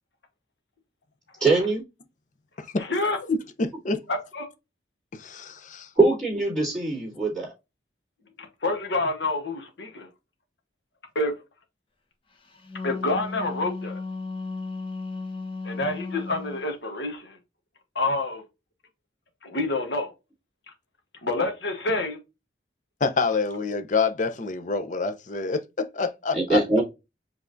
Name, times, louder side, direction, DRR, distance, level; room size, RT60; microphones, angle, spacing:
voice 1, 1.4-1.8 6.0-7.5 26.3-26.8, right 3 dB, 5° left, 3.0 m, -22 dB
voice 2, 3.3-4.0 5.1-5.9 23.0-26.8, left 4 dB, 45° left, 0.6 m, -27 dB
voice 3, 4.1-4.4 8.4-10.1 11.1-11.3 12.8-14.0 15.6-17.4 17.9-18.4 19.4-20.1 21.2-22.2, left 2 dB, 75° left, 1.2 m, -27 dB
Wind instrument woodwind instrument, 12.5-16.7, left 3 dB, 30° left, 1.1 m, -35 dB
5.5 x 3.4 x 2.6 m
head